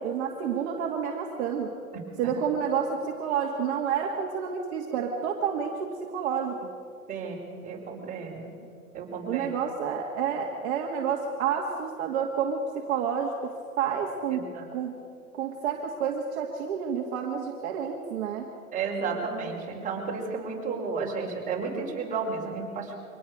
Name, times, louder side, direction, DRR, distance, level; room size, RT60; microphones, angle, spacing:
voice 1, 0.0-1.7 2.2-6.5 9.3-15.0 15.4-18.5, right 7 dB, 50° right, 1 dB, 2.3 m, -29 dB
voice 2, 7.6-8.5 8.9-9.5 14.3-14.6 18.7-23.0, right 5 dB, 20° right, -2 dB, 5.1 m, -32 dB
24.5 x 19.0 x 6.6 m, 2.4 s
hypercardioid pair, 125°, 44 cm